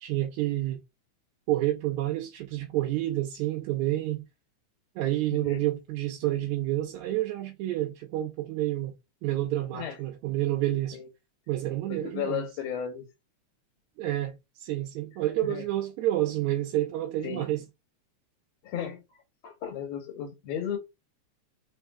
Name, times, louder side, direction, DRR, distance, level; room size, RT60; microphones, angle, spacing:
voice 1, 0.0-0.8 1.5-4.2 5.0-8.9 9.2-11.0 11.5-12.5 14.0-17.6, right 15 dB, 90° right, 2.1 m, -29 dB
voice 2, 11.9-13.1 15.4-15.7 17.2-17.5 18.6-19.0 19.4-20.8, left 8 dB, 70° left, 2.0 m, -34 dB
4.5 x 3.4 x 2.3 m
omnidirectional pair, 3.3 m